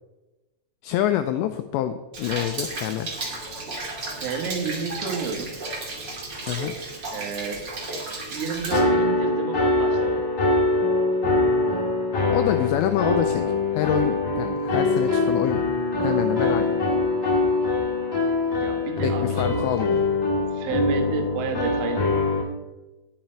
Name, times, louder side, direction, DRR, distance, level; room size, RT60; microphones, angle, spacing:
voice 1, 0.8-3.1 6.5-6.7 12.3-15.6 16.0-16.7 19.0-20.0, left 12 dB, 90° left, 8 dB, 2.5 m, -26 dB
Rain, 2.1-8.8, right 2 dB, 40° right, 1.5 m, -33 dB
voice 2, 4.2-5.6 7.1-7.6 8.3-10.3 18.6-19.6 20.5-22.2, right 5 dB, 85° right, 4 dB, 4.0 m, -31 dB
sound 1, 8.7-22.4, left 3 dB, 40° left, 1.1 m, -23 dB
10.5 x 9.5 x 4.5 m, 1.1 s
omnidirectional pair, 5.6 m